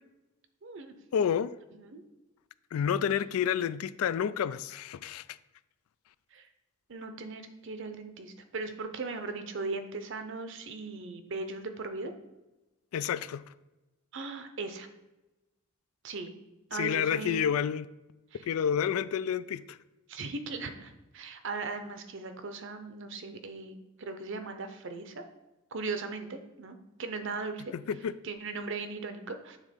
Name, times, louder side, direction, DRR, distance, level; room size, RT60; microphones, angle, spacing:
voice 1, 0.6-0.9 1.7-2.0 6.3-6.5 6.9-12.1 14.1-14.9 16.0-16.3 16.7-17.5 18.3-18.5 20.1-25.2 25.7-27.7 28.2-29.6, right 3 dB, 60° right, 8 dB, 0.7 m, -38 dB
voice 2, 1.1-1.5 2.7-5.2 12.9-13.4 16.8-17.9 18.5-19.6 27.7-28.1, left 8 dB, 85° left, 16 dB, 0.3 m, -29 dB
7.4 x 3.6 x 5.1 m, 1.0 s
head